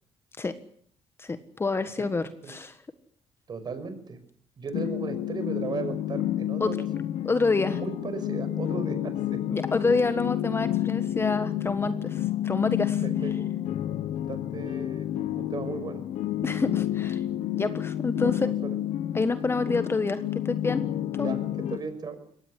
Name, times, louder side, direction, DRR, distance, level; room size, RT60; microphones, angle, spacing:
voice 1, 1.2-2.8 6.6-6.8 7.2-7.8 9.5-13.0 16.4-17.2 17.5-18.5 19.1-20.8 21.1-21.3, left 3 dB, 20° left, 11 dB, 1.5 m, -27 dB
voice 2, 3.5-4.2 4.6-6.9 7.2-7.4 7.7-9.4 13.0-13.3 14.3-16.0 18.2-18.8 21.2-21.4 21.7-22.2, right 5 dB, 40° right, 10 dB, 5.8 m, -36 dB
sound 1, 4.7-21.8, left 12 dB, 75° left, 1.3 m, -30 dB
22.0 x 18.0 x 9.9 m, 0.62 s
cardioid pair, 110°, 11 cm